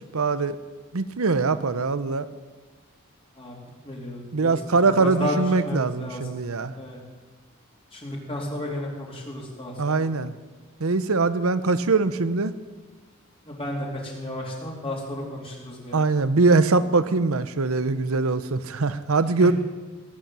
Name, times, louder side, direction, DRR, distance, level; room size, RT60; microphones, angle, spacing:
voice 1, 0.1-0.6 0.9-2.3 4.3-6.7 9.8-10.3 10.8-12.5 15.9-19.5, right 3 dB, 90° right, 14 dB, 0.8 m, -22 dB
voice 2, 3.8-6.2 6.8-7.0 7.9-10.1 13.5-16.0 19.4-19.5, left 1 dB, 25° left, -2 dB, 3.0 m, -32 dB
17.5 x 8.5 x 7.5 m, 1.3 s
head